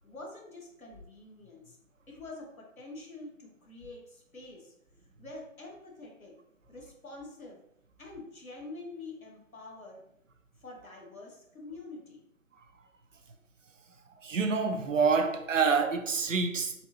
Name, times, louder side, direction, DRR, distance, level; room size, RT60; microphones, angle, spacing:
voice 1, 0.0-1.8 2.1-4.7 5.2-6.4 6.7-7.6 8.0-10.0 10.6-12.2, left 2 dB, 75° left, 1.3 m, -46 dB
voice 2, 14.2-16.9, right 5 dB, 65° right, 0.6 m, -27 dB
3.9 x 2.5 x 3.0 m
figure-of-eight pair, 155°, 42 cm